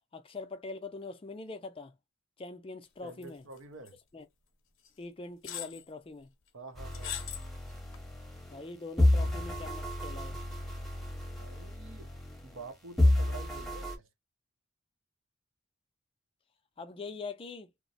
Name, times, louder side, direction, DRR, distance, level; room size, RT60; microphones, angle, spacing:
voice 1, 0.1-1.9 2.4-3.4 4.1-4.3 5.0-6.3 8.5-10.4 16.8-17.7, left 3 dB, 25° left, 0.3 m, -43 dB
voice 2, 3.0-4.0 6.5-7.2 11.4-12.1 12.4-14.1, right 3 dB, 70° right, 0.6 m, -48 dB
sound 1, 3.2-3.6 3.9-4.0 4.9-5.0 5.4-5.8 6.9-7.5 7.9-8.0, left 10 dB, 70° left, 0.7 m, -39 dB
sound 2, 6.8-8.6 9.0-12.7 13.0-14.0, left 1 dB, ahead, 0.7 m, -30 dB
2.9 x 2.0 x 2.6 m
head